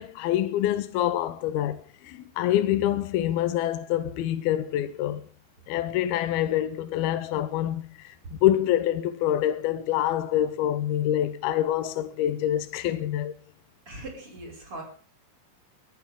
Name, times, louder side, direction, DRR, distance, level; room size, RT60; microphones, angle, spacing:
voice 1, 0.0-5.2 5.7-8.1 8.4-13.3, left 12 dB, 75° left, 2.4 m, -26 dB
voice 2, 13.9-14.8, right 1 dB, 30° right, 6.3 m, -40 dB
23.5 x 15.0 x 3.7 m
omnidirectional pair, 5.3 m